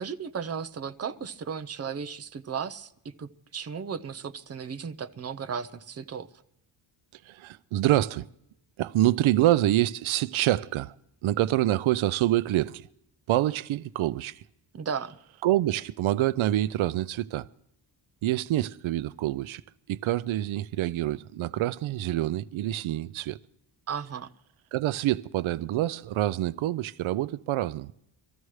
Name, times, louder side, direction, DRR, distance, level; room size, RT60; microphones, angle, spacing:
voice 1, 0.0-6.3 14.7-15.2 23.9-24.3, right 6 dB, 30° right, 0.7 m, -35 dB
voice 2, 7.2-8.3 8.8-11.0 11.2-12.9 13.3-14.4 15.4-17.5 18.2-19.6 19.9-23.4 24.7-27.9, right 14 dB, 80° right, 0.5 m, -26 dB
24.5 x 14.5 x 3.2 m
wide cardioid pair, 150°, 47 cm